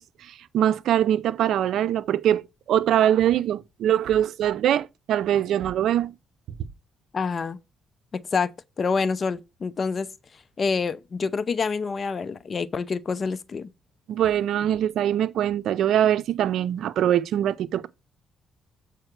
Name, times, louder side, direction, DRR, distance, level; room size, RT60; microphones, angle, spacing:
voice 1, 0.0-2.4 2.7-6.1 14.1-17.9, right 11 dB, 75° right, 0.5 m, -23 dB
voice 2, 7.1-7.6 8.1-8.5 8.8-10.1 10.6-13.7, left 5 dB, 40° left, 0.7 m, -27 dB
7.7 x 4.9 x 4.6 m
cardioid pair, 90°, 0 cm